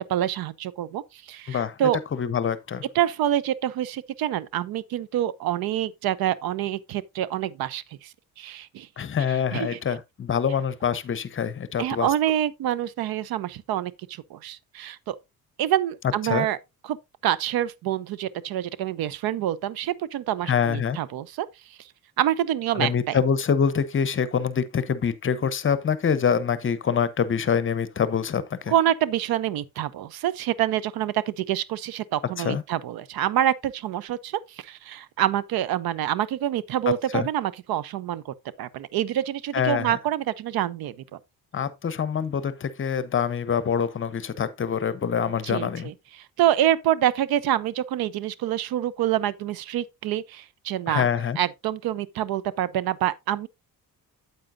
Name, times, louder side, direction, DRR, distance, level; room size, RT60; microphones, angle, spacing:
voice 1, 0.1-2.0 2.9-8.9 9.3-9.9 11.8-15.2 15.6-16.6 16.8-17.0 17.2-21.9 22.2-23.2 28.7-41.2 45.4-51.1 51.4-53.5, right 12 dB, 90° right, 0.7 m, -27 dB
voice 2, 1.5-1.8 2.1-2.8 9.0-12.1 16.2-16.5 20.5-21.0 22.8-28.7 32.4-32.6 36.9-37.3 39.5-40.0 41.5-45.9 50.9-51.4, left 7 dB, 35° left, 0.8 m, -25 dB
8.9 x 8.2 x 2.5 m
cardioid pair, 125°, 35 cm